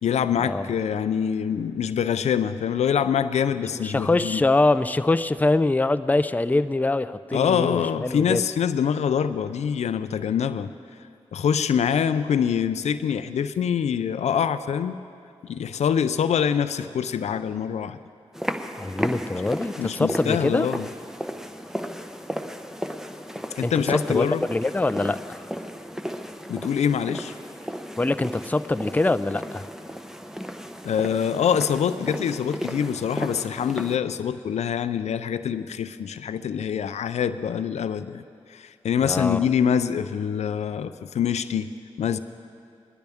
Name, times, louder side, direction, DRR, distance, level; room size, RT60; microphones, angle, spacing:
voice 1, 0.0-4.4 7.3-10.7 11.3-15.0 15.4-18.0 19.8-20.9 23.6-24.4 26.5-27.3 30.8-38.2 38.5-41.7 42.0-42.2, left 8 dB, 80° left, 12 dB, 0.4 m, -25 dB
voice 2, 3.8-8.4 18.8-20.7 23.6-25.4 28.0-29.6 39.0-39.4, left 2 dB, 15° left, 12 dB, 0.4 m, -24 dB
sound 1, 18.3-34.0, equal, 5° right, 0.8 m, -34 dB
20.0 x 12.0 x 3.5 m, 2.4 s
cardioid pair, 40°, 11 cm